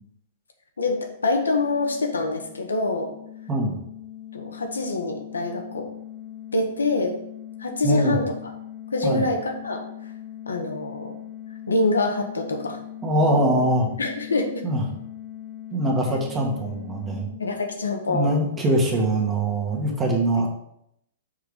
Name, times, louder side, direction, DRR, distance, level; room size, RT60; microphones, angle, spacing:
voice 1, 0.8-3.1 4.3-5.9 6.5-7.1 7.6-8.3 8.9-9.9 10.5-11.1 11.7-12.8 14.0-14.6 17.4-18.3, left 2 dB, 70° left, 4 dB, 1.1 m, -25 dB
sound 1, 0.9-18.4, left 11 dB, 30° left, 0.7 m, -41 dB
voice 2, 7.8-8.2 9.0-9.3 13.0-13.9 14.6-14.8 15.7-17.3 18.1-20.5, right 1 dB, 20° right, 0 dB, 1.5 m, -22 dB
6.6 x 4.7 x 5.1 m, 0.77 s
figure-of-eight pair, 105°, 0 cm